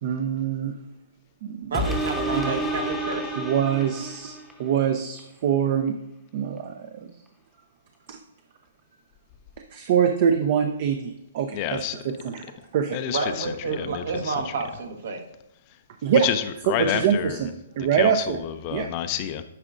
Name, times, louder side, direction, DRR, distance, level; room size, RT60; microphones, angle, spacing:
voice 1, 0.0-0.7 1.4-1.8 2.3-2.5 3.4-6.0 6.3-7.1 8.1-8.2 9.7-12.5 12.7-13.0 16.0-16.3 16.7-18.4 18.7-18.9, right 8 dB, 50° right, 6 dB, 0.5 m, -24 dB
sound 1, 1.7-4.7 5.2-5.3, right 1 dB, ahead, 0.8 m, -29 dB
voice 2, 1.7-3.4 13.1-15.2, right 4 dB, 70° right, 3 dB, 1.2 m, -30 dB
voice 3, 11.5-12.0 12.9-14.5 16.1-17.4 18.0-19.4, left 10 dB, 35° left, 10 dB, 0.5 m, -29 dB
9.7 x 4.9 x 2.5 m, 0.89 s
hypercardioid pair, 140°, 0 cm